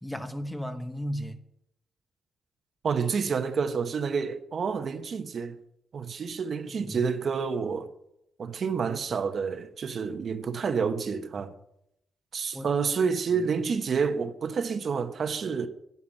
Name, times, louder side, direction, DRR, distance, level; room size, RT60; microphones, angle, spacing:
voice 1, 0.0-1.4 6.8-7.0 12.5-13.7, equal, 5° left, 1.0 m, -36 dB
voice 2, 2.8-5.6 5.9-7.9 8.4-11.5 12.3-15.7, right 5 dB, 50° right, 1.0 m, -29 dB
11.0 x 9.7 x 7.3 m
cardioid pair, 130°, 0 cm